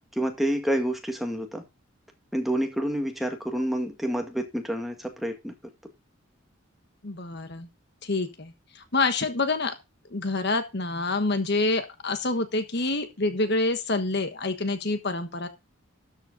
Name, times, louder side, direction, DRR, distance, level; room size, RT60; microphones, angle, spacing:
voice 1, 0.1-1.6 2.3-5.5, right 1 dB, ahead, 3 dB, 1.9 m, -28 dB
voice 2, 7.0-7.7 8.0-9.7 10.1-15.5, left 3 dB, 55° left, 9 dB, 1.3 m, -27 dB
13.0 x 8.1 x 3.8 m, 0.25 s
head